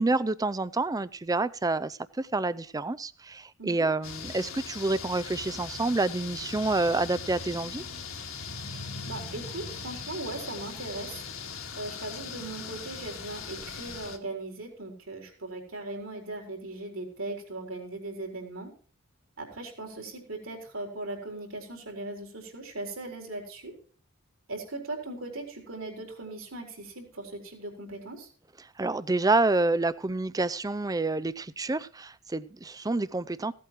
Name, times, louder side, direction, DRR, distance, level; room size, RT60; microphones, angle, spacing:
voice 1, 0.0-7.8 28.8-33.5, right 2 dB, 15° right, 16 dB, 0.5 m, -28 dB
sound 1, 4.0-14.2, left 5 dB, 65° left, 2.0 m, -40 dB
voice 2, 9.0-11.2 11.8-18.7 19.4-23.7 24.5-28.3, right 2 dB, 70° right, 3 dB, 4.4 m, -39 dB
16.0 x 8.5 x 4.5 m, 0.43 s
head